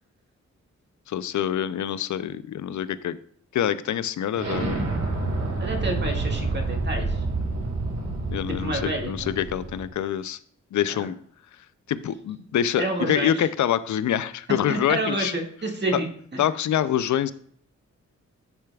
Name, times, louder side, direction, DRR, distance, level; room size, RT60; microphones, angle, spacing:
voice 1, 1.1-3.2 3.5-4.8 8.3-10.4 10.7-11.2 11.9-15.3 15.9-16.0 16.4-17.3, left 10 dB, 80° left, 15 dB, 0.5 m, -26 dB
Explosion, 4.4-9.9, right 3 dB, 60° right, 2.1 m, -28 dB
voice 2, 5.6-7.2 8.6-9.4 10.9-11.0 12.8-13.4 14.7-16.1 16.3-16.4, right 2 dB, 40° right, 1 dB, 2.0 m, -29 dB
10.0 x 6.6 x 2.3 m, 0.63 s
cardioid pair, 85°, 29 cm